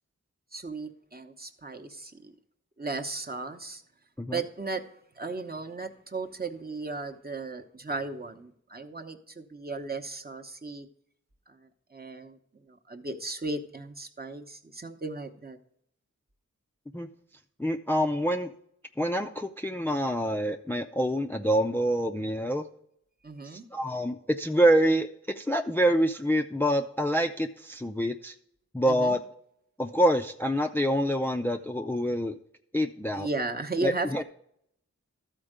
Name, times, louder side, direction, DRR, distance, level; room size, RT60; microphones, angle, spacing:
voice 1, 0.5-2.3 2.8-3.8 4.3-4.8 5.2-10.9 11.5-15.6 23.2-23.6 28.8-29.2 33.1-34.2, right 3 dB, 30° right, 4 dB, 0.8 m, -36 dB
voice 2, 17.6-18.5 19.0-22.7 23.4-25.1 25.3-28.3 28.7-29.2 29.8-32.4 32.7-33.3 33.8-34.2, equal, 5° left, 6 dB, 0.4 m, -26 dB
13.0 x 4.4 x 5.0 m, 0.70 s
wide cardioid pair, 60°, 30 cm